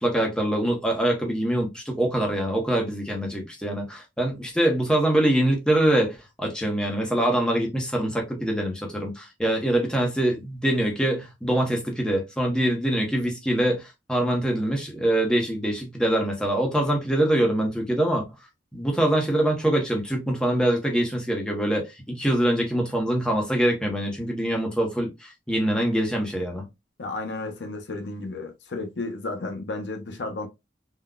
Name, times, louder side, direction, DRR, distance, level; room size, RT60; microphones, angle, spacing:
voice 1, 0.0-13.8 14.1-18.2 18.7-26.6, right 1 dB, 5° left, 0.7 m, -24 dB
voice 2, 27.0-30.5, left 2 dB, 75° left, 0.6 m, -33 dB
3.6 x 2.2 x 2.2 m
head